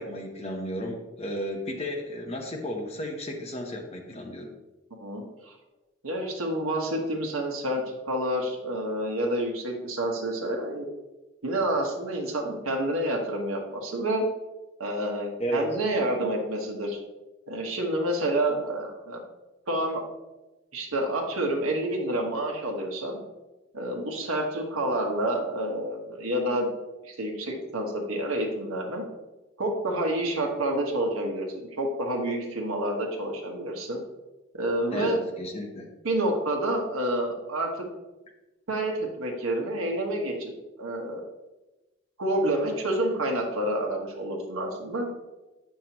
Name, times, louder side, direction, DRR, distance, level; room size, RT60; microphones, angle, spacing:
voice 1, 0.0-4.5 15.4-15.7 34.9-35.9, equal, 30° left, 2 dB, 0.8 m, -33 dB
voice 2, 5.0-5.6 6.0-10.9 11.4-14.2 14.8-17.0 17.5-19.2 19.7-20.0 20.7-23.2 23.7-26.7 27.0-29.0 29.6-34.0 34.5-35.2 36.0-37.7 38.7-40.5 40.8-41.2 42.2-45.1, right 1 dB, 75° right, 1 dB, 1.2 m, -28 dB
7.5 x 5.7 x 2.9 m, 1.1 s
head